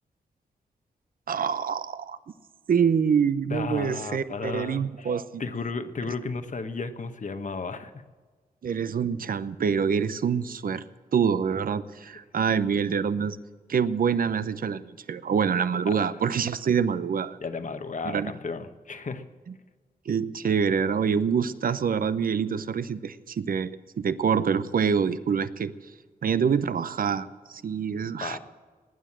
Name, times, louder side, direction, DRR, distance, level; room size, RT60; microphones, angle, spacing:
voice 1, 1.3-2.2 2.7-5.4 8.6-10.9 11.1-13.4 13.7-17.4 18.0-18.3 20.1-25.7 26.2-28.4, right 6 dB, 60° right, 14 dB, 0.8 m, -26 dB
voice 2, 3.4-5.1 5.4-8.0 15.9-16.0 17.4-19.2 28.2-28.4, left 4 dB, 50° left, 8 dB, 1.3 m, -34 dB
19.0 x 9.3 x 7.5 m, 1.5 s
cardioid pair, 50°, 16 cm